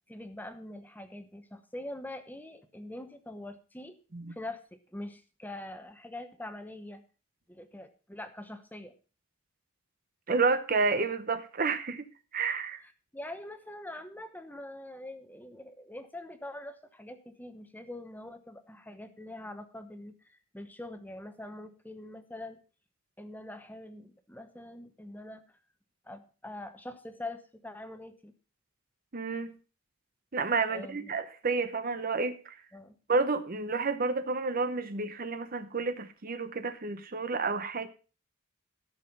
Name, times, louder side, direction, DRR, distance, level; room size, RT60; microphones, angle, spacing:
voice 1, 0.1-4.0 4.3-4.6 4.9-7.0 7.5-8.9 12.8-22.6 23.2-25.4 26.0-28.3 30.7-31.1 32.7-33.0, left 1 dB, 10° left, 1.0 m, -44 dB
voice 2, 10.3-12.1 12.3-12.8 29.1-29.6 30.3-32.6 33.1-37.9, right 4 dB, 45° right, 0.8 m, -30 dB
13.5 x 6.5 x 5.3 m
head